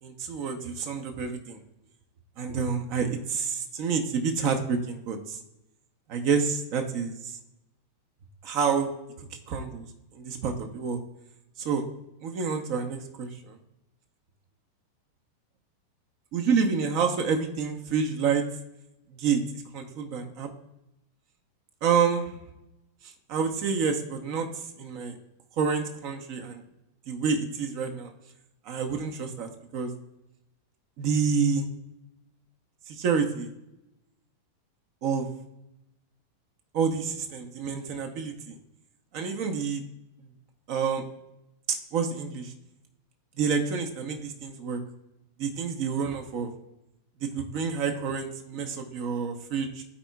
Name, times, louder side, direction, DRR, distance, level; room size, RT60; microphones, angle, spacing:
voice 1, 0.0-1.6 2.4-5.4 6.1-7.4 8.4-8.9 9.2-9.9 10.1-11.0 11.6-11.8 12.2-13.6 16.3-18.4 19.1-20.5 21.8-22.3 23.0-25.2 25.6-26.6 27.1-28.1 28.6-29.9 31.0-31.7 32.9-33.5 35.0-35.3 36.7-38.6 39.1-39.8 40.7-41.0 41.7-42.5 43.4-44.8 45.4-46.5 47.2-49.8, right 6 dB, 45° right, 4 dB, 0.9 m, -28 dB
12.5 x 4.6 x 2.3 m, 0.88 s
figure-of-eight pair, 90°, 0 cm